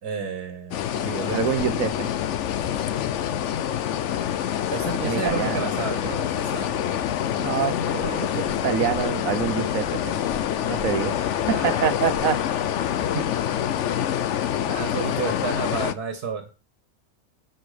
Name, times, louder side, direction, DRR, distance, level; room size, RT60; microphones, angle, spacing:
voice 1, 0.0-1.6 4.7-6.7 11.5-11.9 13.0-13.3 14.6-16.5, right 5 dB, 85° right, 8 dB, 1.9 m, -31 dB
sound 1, 0.7-15.9, left 10 dB, 60° left, 0.9 m, -26 dB
voice 2, 1.3-2.1 5.0-5.7 7.4-10.2 10.7-11.1 11.6-12.4, right 8 dB, 65° right, 12 dB, 1.3 m, -26 dB
sound 2, 4.7-13.6, left 3 dB, 25° left, 2.2 m, -43 dB
10.5 x 8.1 x 5.0 m, 0.34 s
omnidirectional pair, 1.6 m